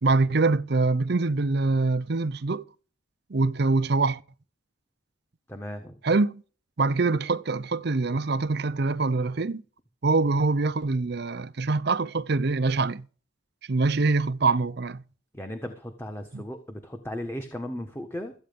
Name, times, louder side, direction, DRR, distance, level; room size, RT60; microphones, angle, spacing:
voice 1, 0.0-2.6 3.3-4.2 6.0-6.4 6.8-9.6 10.0-13.1 13.7-15.0 16.3-16.4, right 3 dB, 55° right, 0.7 m, -24 dB
voice 2, 5.5-6.0 15.3-18.3, left 1 dB, 10° left, 1.4 m, -36 dB
14.0 x 8.9 x 5.3 m
head